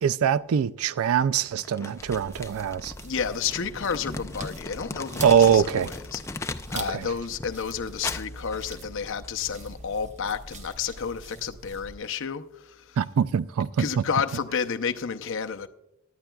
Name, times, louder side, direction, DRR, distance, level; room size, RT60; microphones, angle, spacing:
voice 1, 0.0-2.9 5.2-5.9 6.7-7.1 13.0-14.0, right 7 dB, 70° right, 0.4 m, -23 dB
Crumpling crinkling, 1.6-7.0 7.3-9.3, left 3 dB, 10° left, 0.4 m, -38 dB
sound 1, 2.0-11.9, right 2 dB, 30° right, 0.9 m, -43 dB
voice 2, 3.0-13.0 13.8-15.7, left 6 dB, 55° left, 0.6 m, -31 dB
18.0 x 11.0 x 2.3 m
head